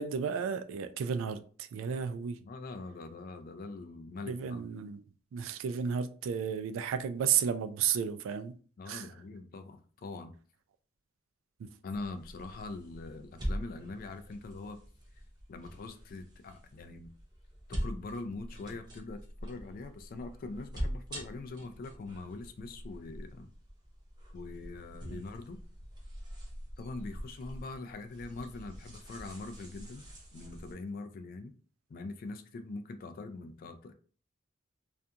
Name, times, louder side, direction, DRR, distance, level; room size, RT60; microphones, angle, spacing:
voice 1, 0.0-2.4 4.3-5.0 5.3-8.6 8.8-9.1 11.6-11.7 25.1-25.2, right 7 dB, 80° right, 0.3 m, -33 dB
voice 2, 2.5-4.6 8.8-10.4 11.8-14.8 15.5-17.1 17.7-23.5 24.3-25.6 26.8-30.0 30.3-31.5 31.9-33.9, left 3 dB, 45° left, 0.3 m, -43 dB
sound 1, 11.9-30.7, equal, 20° right, 0.7 m, -43 dB
2.4 x 2.2 x 2.7 m
head